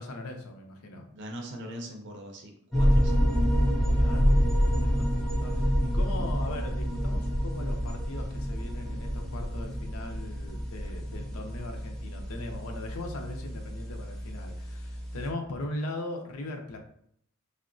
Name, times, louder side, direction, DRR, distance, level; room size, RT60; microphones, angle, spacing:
voice 1, 0.0-1.1 3.8-16.8, left 2 dB, 90° left, 3 dB, 0.5 m, -39 dB
voice 2, 1.1-3.2, equal, 55° right, 3 dB, 0.5 m, -41 dB
sound 1, 2.7-15.3, equal, ahead, 0.4 m, -28 dB
3.6 x 2.1 x 2.5 m, 0.67 s
head